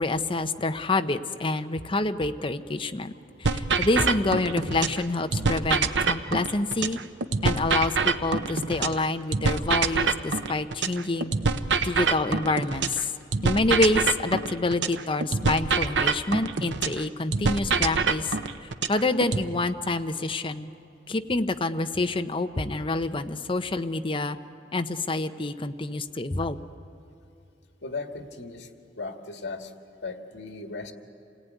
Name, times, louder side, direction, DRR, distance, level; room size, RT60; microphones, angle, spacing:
voice 1, 0.0-3.1 3.4-7.0 7.4-11.3 11.8-13.1 13.4-18.3 18.9-20.7 21.1-24.4 24.7-26.6, left 2 dB, 30° left, 8 dB, 0.8 m, -27 dB
sound 1, 3.4-5.0 5.3-9.0 9.3-13.0 13.3-17.0 17.3-19.4, right 4 dB, 80° right, 0.8 m, -25 dB
voice 2, 27.8-28.7 29.0-29.7 30.0-30.9, left 3 dB, 80° left, 5 dB, 1.9 m, -36 dB
27.5 x 18.0 x 9.3 m, 2.7 s
head